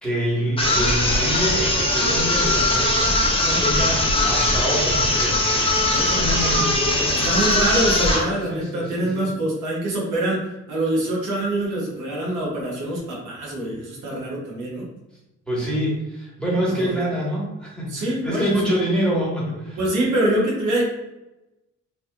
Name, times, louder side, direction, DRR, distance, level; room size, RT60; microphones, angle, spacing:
voice 1, 0.0-3.2 3.6-5.4 6.0-7.3 8.2-9.3 15.5-19.8, equal, 5° left, -6 dB, 1.3 m, -26 dB
sound 1, 0.6-8.3, left 1 dB, 20° left, 0.7 m, -20 dB
voice 2, 5.8-6.2 7.2-10.4 10.7-14.9 16.7-16.9 17.9-18.7 19.8-20.8, right 1 dB, 80° right, -4 dB, 1.2 m, -25 dB
3.1 x 2.7 x 2.4 m, 0.96 s
cardioid pair, 90°, 30 cm